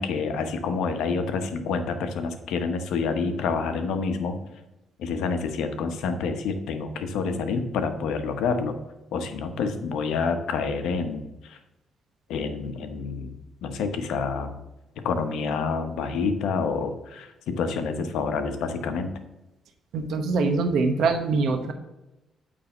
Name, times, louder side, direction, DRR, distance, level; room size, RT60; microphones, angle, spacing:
voice 1, 0.0-4.4 5.0-8.8 9.1-11.6 12.3-13.4 13.6-14.6 15.0-19.1, left 5 dB, 85° left, 7 dB, 0.9 m, -28 dB
voice 2, 19.9-21.7, right 4 dB, 75° right, 6 dB, 0.8 m, -23 dB
8.5 x 3.4 x 6.7 m, 0.97 s
cardioid pair, 90°, 0 cm